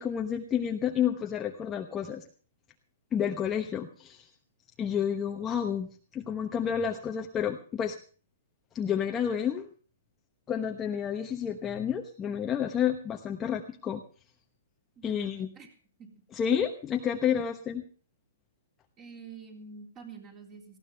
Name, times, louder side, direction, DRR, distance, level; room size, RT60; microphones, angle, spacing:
voice 1, 0.0-2.2 3.1-4.3 4.8-8.0 8.7-9.7 10.5-14.0 15.0-15.5 16.3-17.8, left 8 dB, 15° left, 3 dB, 1.1 m, -30 dB
voice 2, 15.0-15.7 16.0-16.1 19.0-20.8, right 5 dB, 20° right, 4 dB, 3.7 m, -47 dB
19.0 x 15.5 x 3.4 m, 0.39 s
hypercardioid pair, 160°, 0 cm